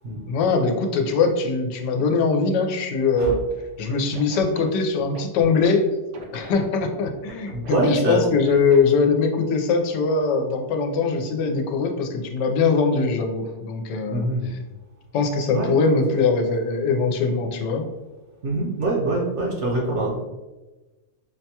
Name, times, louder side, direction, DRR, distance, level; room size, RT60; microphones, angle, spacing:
voice 1, 0.3-3.4 3.8-5.8 6.3-14.6 15.1-17.8, left 4 dB, 90° left, 4 dB, 1.2 m, -22 dB
Scratching (performance technique), 3.8-5.7 6.1-7.7 8.4-9.1, right 2 dB, 85° right, 1.3 m, -41 dB
voice 2, 7.5-8.2 14.1-14.5 15.5-15.7 18.4-20.2, right 2 dB, 55° right, -4 dB, 0.8 m, -24 dB
5.7 x 2.2 x 2.8 m, 1.1 s
omnidirectional pair, 1.8 m